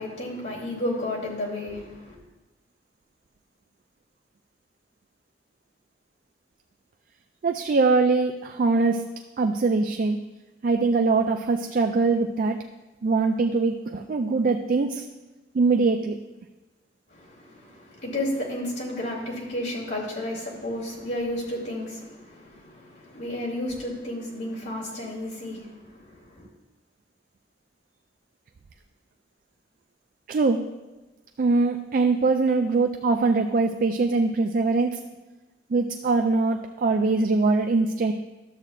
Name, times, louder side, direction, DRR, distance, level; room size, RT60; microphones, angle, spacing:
voice 1, 0.0-2.2 17.1-26.5, left 1 dB, 65° left, -5 dB, 2.7 m, -32 dB
voice 2, 7.4-9.0 9.4-10.2 10.6-12.6 13.0-15.1 15.5-16.2 30.3-30.7 31.4-35.0 35.7-38.1, right 3 dB, 50° right, 5 dB, 0.3 m, -22 dB
12.5 x 7.6 x 2.5 m, 1.1 s
head